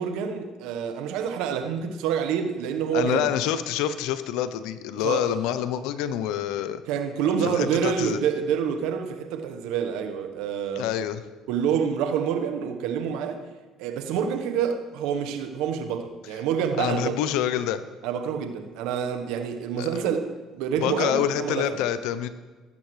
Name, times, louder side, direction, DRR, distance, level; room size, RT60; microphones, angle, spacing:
voice 1, 0.0-3.2 5.0-5.3 6.9-10.9 11.5-13.5 13.8-17.1 18.0-21.8, right 7 dB, 75° right, 1.1 m, -27 dB
voice 2, 2.9-6.8 7.4-8.2 10.8-11.2 16.8-17.8 19.8-19.9 20.8-22.3, left 10 dB, 75° left, 0.6 m, -27 dB
16.5 x 7.4 x 3.2 m
hypercardioid pair, 65°, 0 cm